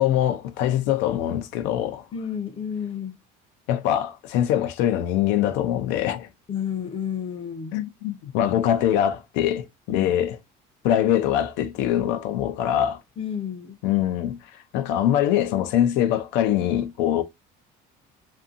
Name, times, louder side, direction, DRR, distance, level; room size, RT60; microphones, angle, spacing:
voice 1, 0.0-2.0 3.7-6.3 7.7-10.4 10.8-13.0 13.8-17.2, left 11 dB, 85° left, 0.4 m, -23 dB
voice 2, 2.1-3.2 6.5-7.8 9.9-10.1 13.2-13.8, left 8 dB, 30° left, 0.5 m, -31 dB
2.6 x 2.5 x 2.4 m
cardioid pair, 125°, 18 cm